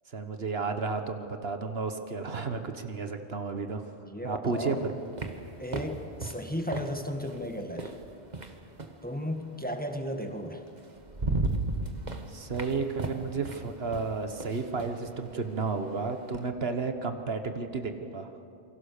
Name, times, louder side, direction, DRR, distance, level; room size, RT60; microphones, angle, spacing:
voice 1, 0.1-3.8 4.2-4.9 12.3-18.3, right 4 dB, 65° right, 7 dB, 1.6 m, -32 dB
voice 2, 4.1-4.9 5.6-7.9 9.0-10.6, equal, 10° left, 5 dB, 1.7 m, -35 dB
sound 1, 4.5-9.1 10.3-10.4 10.8-16.5, right 2 dB, 40° right, 1.6 m, -36 dB
28.0 x 23.5 x 6.7 m, 2.7 s
omnidirectional pair, 1.1 m